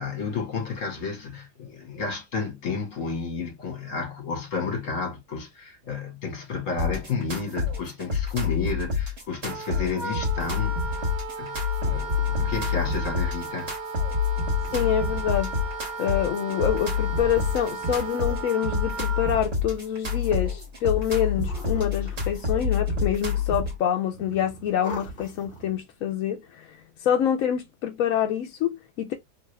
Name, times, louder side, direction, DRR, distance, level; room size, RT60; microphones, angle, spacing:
voice 1, 0.0-11.1 11.4-13.7, left 5 dB, 50° left, 1.5 m, -31 dB
sound 1, 6.8-23.8, left 5 dB, 45° right, 1.5 m, -28 dB
Wind instrument woodwind instrument, 9.5-19.4, right 3 dB, 65° right, 1.4 m, -35 dB
sound 2, 11.7-15.9 16.4-18.3 19.1-20.3 21.1-22.6 22.9-23.6 24.0-25.9, equal, 35° left, 1.1 m, -44 dB
voice 2, 14.7-15.5 16.0-29.1, left 9 dB, 70° left, 0.8 m, -26 dB
3.1 x 2.3 x 3.1 m
omnidirectional pair, 1.7 m